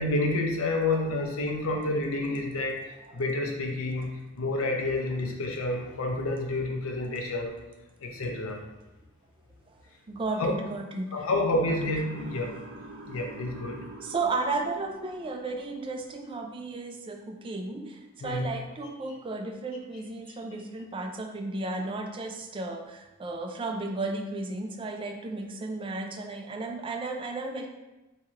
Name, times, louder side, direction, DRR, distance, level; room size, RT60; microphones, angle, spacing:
voice 1, 0.0-4.1 4.4-7.5 8.0-8.6 10.4-10.5 11.1-12.5 13.1-13.8 18.2-18.5, left 2 dB, 85° left, 1 dB, 0.6 m, -29 dB
voice 2, 10.1-11.3 11.6-11.9 14.0-27.7, right 3 dB, 25° right, 4 dB, 0.3 m, -34 dB
Motor vehicle (road) / Siren, 11.7-15.9, right 2 dB, 55° right, 0.6 m, -46 dB
3.1 x 2.8 x 3.5 m, 1.0 s
head